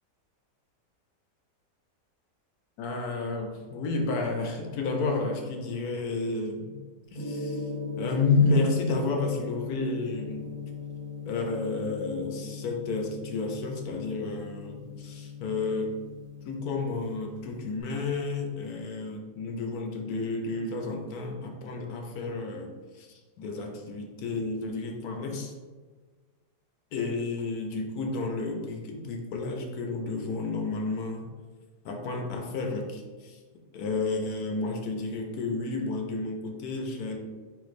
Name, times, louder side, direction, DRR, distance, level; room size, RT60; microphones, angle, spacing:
voice 1, 2.8-6.8 7.1-7.7 8.0-10.5 11.3-15.9 16.5-25.5 26.9-31.2 31.8-33.4 33.7-37.2, left 3 dB, 70° left, 3 dB, 1.0 m, -31 dB
Gong, 7.1-17.8, left 4 dB, 35° left, 0.8 m, -39 dB
4.0 x 2.5 x 4.0 m, 1.4 s
omnidirectional pair, 1.8 m